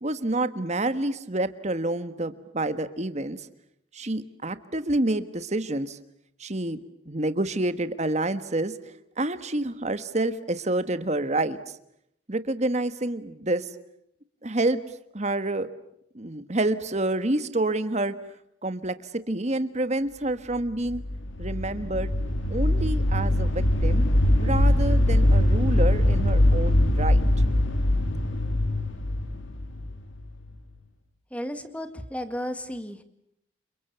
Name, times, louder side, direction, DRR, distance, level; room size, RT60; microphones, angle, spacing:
voice 1, 0.0-3.5 3.9-6.0 6.4-6.8 7.0-8.7 9.2-11.6 12.3-13.7 14.4-14.8 15.1-15.7 16.1-18.1 18.6-19.0 19.3-21.0 21.4-22.1 22.5-24.0 24.4-27.2, right 2 dB, 35° right, 12 dB, 1.5 m, -28 dB
sound 1, 20.7-30.5, left 1 dB, 80° left, 3.0 m, -22 dB
voice 2, 31.3-33.0, equal, 5° left, 9 dB, 2.0 m, -33 dB
29.5 x 27.5 x 7.0 m, 0.76 s
head